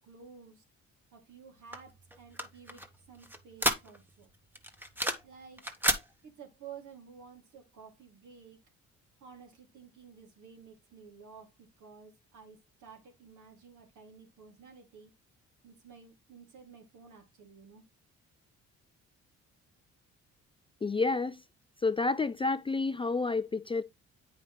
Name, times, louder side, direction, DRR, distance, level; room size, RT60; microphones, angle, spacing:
voice 1, 0.0-0.6 1.1-4.3 5.2-5.6 6.2-8.6 9.2-15.1 15.6-17.8, right 6 dB, 75° right, 3.1 m, -53 dB
sound 1, 1.7-4.2 4.6-5.3 5.6-6.0, equal, 5° right, 1.1 m, -32 dB
voice 2, 20.8-21.4 21.8-23.8, left 3 dB, 20° left, 0.3 m, -29 dB
8.7 x 5.2 x 3.3 m
cardioid pair, 90°, 30 cm